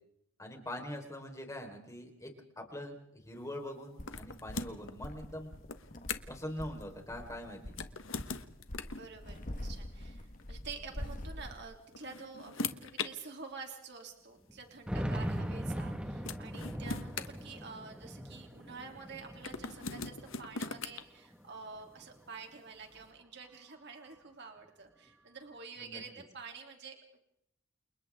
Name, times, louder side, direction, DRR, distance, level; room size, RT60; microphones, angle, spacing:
voice 1, 0.4-2.3 2.6-5.5 6.3-7.7 25.8-26.0, left 1 dB, 15° left, 2 dB, 4.3 m, -43 dB
sound 1, 4.0-11.6, left 1 dB, 40° left, 1.6 m, -45 dB
sound 2, 4.1-4.9 5.7-6.4 7.7-9.1 10.4-10.5 11.7-13.1 14.1-14.2 15.8-15.9 16.3-18.1 19.4-21.0, left 4 dB, 70° left, 1.3 m, -40 dB
voice 2, 8.9-27.2, right 5 dB, 55° right, 2 dB, 3.1 m, -48 dB
sound 3, 10.9-11.0 11.2-11.3 12.2-12.3 12.8-12.9 14.5-20.9 21.3-22.3, equal, 5° right, 1.6 m, -40 dB
29.5 x 29.0 x 3.7 m, 0.75 s
head